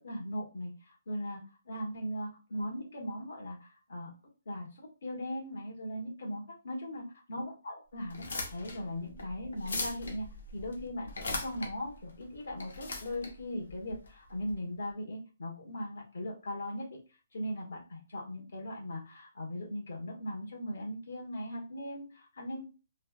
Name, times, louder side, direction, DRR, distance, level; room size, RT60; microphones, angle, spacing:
voice 1, 0.0-4.1 4.4-17.0 17.3-22.6, left 1 dB, 70° left, -1 dB, 1.1 m, -39 dB
sound 1, 8.0-14.5, left 2 dB, 85° left, 0.7 m, -40 dB
3.1 x 2.2 x 2.3 m, 0.32 s
hypercardioid pair, 175°, 0 cm